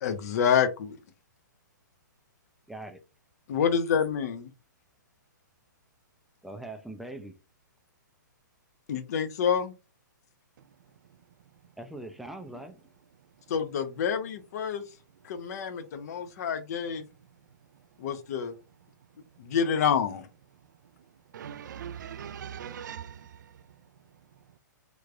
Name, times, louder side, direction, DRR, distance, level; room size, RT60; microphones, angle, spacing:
voice 1, 0.0-1.0 3.5-4.5 8.9-9.7 13.5-14.8 15.2-17.0 18.0-18.5 19.4-20.3, left 7 dB, 55° left, 0.8 m, -27 dB
voice 2, 2.7-3.0 6.4-7.4 11.8-12.8, right 1 dB, ahead, 0.4 m, -41 dB
voice 3, 21.3-23.5, right 8 dB, 70° right, 0.4 m, -40 dB
3.4 x 3.1 x 2.5 m
hypercardioid pair, 130°, 10 cm